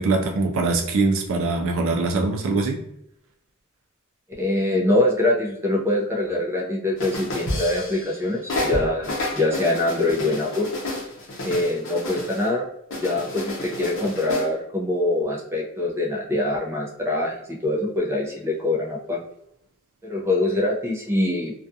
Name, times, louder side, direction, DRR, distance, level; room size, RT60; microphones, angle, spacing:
voice 1, 0.0-2.8, right 3 dB, 65° right, 3 dB, 0.4 m, -22 dB
voice 2, 4.4-10.7 11.4-12.7 13.0-17.3 17.6-19.2 20.0-21.5, left 1 dB, 10° right, -3 dB, 0.6 m, -24 dB
sound 1, 7.0-8.2 8.5-12.5 12.9-14.5, left 1 dB, 65° left, 0.7 m, -30 dB
2.4 x 2.3 x 2.6 m, 0.77 s
head